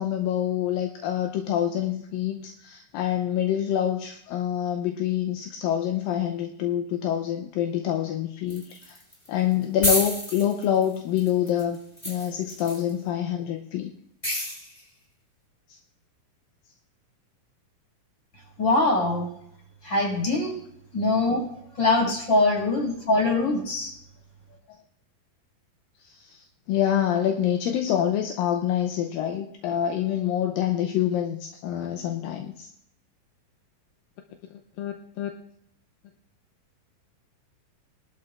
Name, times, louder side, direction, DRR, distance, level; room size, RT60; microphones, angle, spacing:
voice 1, 0.0-9.0 9.3-11.8 12.1-13.9 15.7-15.8 26.0-32.7 34.8-35.3, left 10 dB, 80° left, 3 dB, 2.3 m, -26 dB
sound 1, 8.5-9.3 9.5-9.6 9.8-12.9 14.2-14.8, equal, 10° left, 5.3 m, -28 dB
voice 2, 18.6-19.3 19.8-20.5 20.9-21.4 21.8-23.9, left 2 dB, 30° left, -3 dB, 6.0 m, -23 dB
21.5 x 12.5 x 2.5 m, 0.73 s
omnidirectional pair, 4.3 m